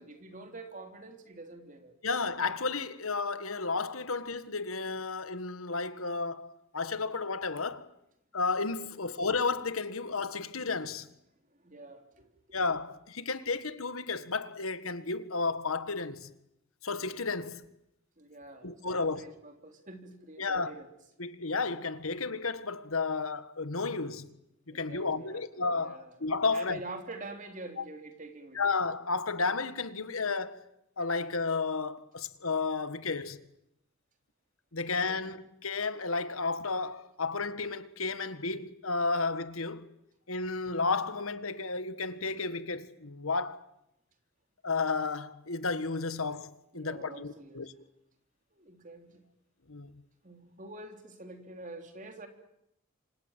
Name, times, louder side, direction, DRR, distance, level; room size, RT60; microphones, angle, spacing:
voice 1, 0.0-1.9 8.9-9.2 11.6-12.6 18.2-20.9 24.7-25.4 25.7-26.1 26.5-28.7 46.7-47.7 48.5-49.3 50.2-52.3, right 2 dB, 35° right, 3.6 m, -46 dB
voice 2, 2.0-7.9 8.3-11.1 12.5-16.3 16.8-17.7 18.6-19.2 20.4-20.7 21.2-24.3 24.7-26.8 27.8-27.9 28.6-30.6 31.0-33.4 34.7-39.9 40.3-43.6 44.6-47.7 49.7-49.9, left 4 dB, 90° left, 1.8 m, -32 dB
28.0 x 26.0 x 7.5 m
head